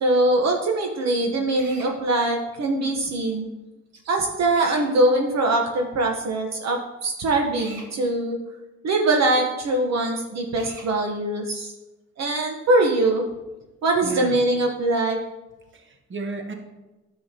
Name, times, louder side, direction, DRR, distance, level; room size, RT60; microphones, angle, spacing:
voice 1, 0.0-3.5 4.0-8.4 8.8-11.7 12.2-13.3 13.8-15.2, right 2 dB, 60° right, 2 dB, 1.1 m, -22 dB
Drill, 1.6-1.9 4.5-4.9 7.6-7.9 10.6-10.9, right 3 dB, 85° right, 1.6 m, -43 dB
voice 2, 14.0-14.4 15.7-16.5, right 3 dB, 40° right, 5 dB, 1.3 m, -34 dB
10.0 x 7.9 x 2.9 m, 1.1 s
cardioid pair, 90°, 30 cm